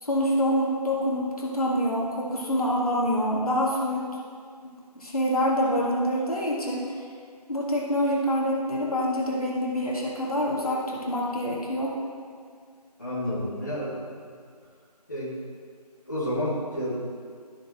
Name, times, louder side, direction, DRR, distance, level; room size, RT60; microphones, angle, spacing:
voice 1, 0.0-4.1 4.9-6.9 7.5-11.9, equal, 60° left, -4 dB, 1.8 m, -26 dB
voice 2, 13.0-13.9 15.1-15.3 16.1-17.0, equal, 25° left, -10 dB, 1.8 m, -30 dB
12.5 x 7.2 x 2.9 m, 2.1 s
figure-of-eight pair, 175°, 21 cm